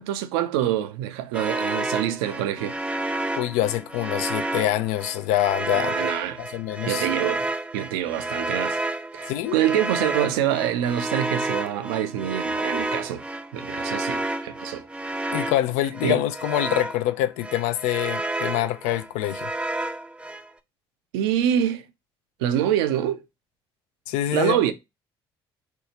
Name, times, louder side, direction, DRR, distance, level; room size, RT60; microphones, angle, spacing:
voice 1, 0.0-2.8 5.7-6.4 6.9-8.8 9.1-13.2 13.5-14.9 16.0-16.2 21.1-21.8 22.4-23.2 24.3-24.7, right 11 dB, 70° right, 0.5 m, -25 dB
sound 1, 1.3-17.1 17.4-20.5, right 2 dB, 10° right, 0.4 m, -30 dB
voice 2, 3.4-6.1 6.4-7.1 9.3-9.6 15.3-19.5 24.1-24.6, left 13 dB, 65° left, 0.4 m, -25 dB
4.4 x 2.4 x 2.7 m
figure-of-eight pair, 50°, 13 cm